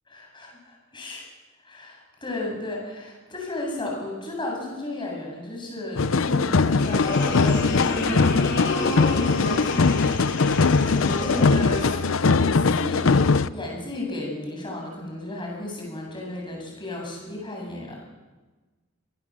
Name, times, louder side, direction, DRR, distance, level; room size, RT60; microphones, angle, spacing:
voice 1, 0.1-1.2 1.6-9.7 10.8-18.0, left 2 dB, 25° left, -1 dB, 7.8 m, -34 dB
sound 1, 6.0-13.5, left 4 dB, 75° left, 0.7 m, -21 dB
sound 2, 6.8-12.0, left 2 dB, 60° left, 4.4 m, -29 dB
26.5 x 19.0 x 7.6 m, 1.2 s
head